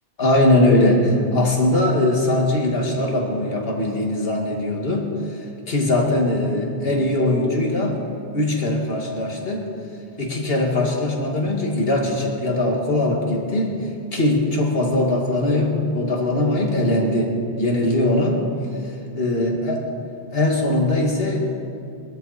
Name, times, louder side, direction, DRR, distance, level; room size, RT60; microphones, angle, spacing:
voice 1, 0.2-5.1 5.7-8.0 8.3-9.6 10.2-13.8 14.1-18.4 18.8-19.9 20.3-21.4, left 1 dB, 65° left, 0 dB, 2.3 m, -21 dB
21.5 x 13.5 x 4.3 m, 2.7 s
omnidirectional pair, 1.1 m